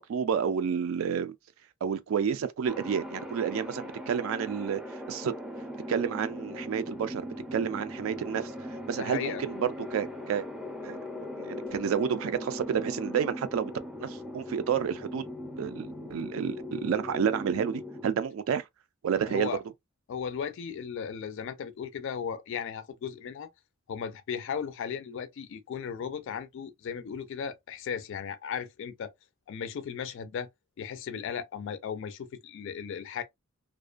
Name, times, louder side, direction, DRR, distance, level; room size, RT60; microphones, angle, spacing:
voice 1, 0.0-1.3 1.8-5.4 5.9-8.5 8.9-10.5 10.8-13.7 14.0-15.2 15.6-18.6 19.0-19.5, right 7 dB, 70° right, 0.3 m, -30 dB
sound 1, 2.7-18.1, left 1 dB, 5° right, 0.5 m, -39 dB
voice 2, 9.0-9.4 9.9-10.0 19.3-19.6 20.1-23.5 23.9-29.1 29.5-30.5 30.8-33.2, left 7 dB, 60° left, 0.3 m, -36 dB
2.4 x 2.2 x 2.4 m
head